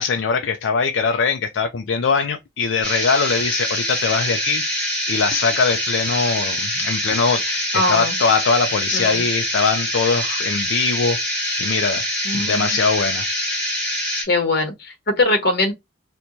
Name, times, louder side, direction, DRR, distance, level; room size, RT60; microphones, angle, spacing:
voice 1, 0.0-4.6 5.1-11.2 11.6-13.2, left 5 dB, 75° left, 0.4 m, -21 dB
sound 1, 2.8-14.2, equal, 5° left, 2.0 m, -24 dB
voice 2, 7.7-8.2 8.9-9.2 12.2-12.8 14.3-15.7, left 2 dB, 60° left, 1.0 m, -21 dB
4.4 x 2.2 x 2.6 m
head